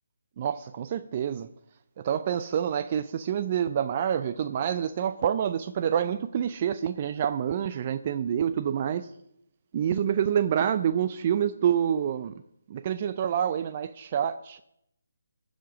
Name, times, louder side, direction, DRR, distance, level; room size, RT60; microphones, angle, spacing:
voice 1, 0.4-1.5 2.0-9.1 9.7-12.3 12.7-14.6, right 9 dB, 35° right, 11 dB, 0.4 m, -27 dB
19.0 x 7.3 x 4.9 m, 0.78 s
figure-of-eight pair, 155°, 0 cm